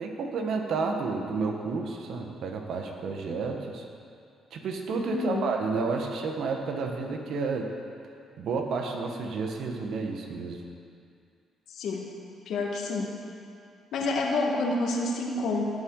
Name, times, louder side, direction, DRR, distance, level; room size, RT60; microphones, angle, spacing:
voice 1, 0.0-3.8 4.5-7.7 8.4-10.6, right 4 dB, 70° right, 3 dB, 1.4 m, -31 dB
voice 2, 5.1-5.5 11.7-12.1 12.5-13.1 13.9-15.6, left 2 dB, 75° left, 0 dB, 1.7 m, -28 dB
16.5 x 7.8 x 4.8 m, 2.4 s
cardioid pair, 90°, 0 cm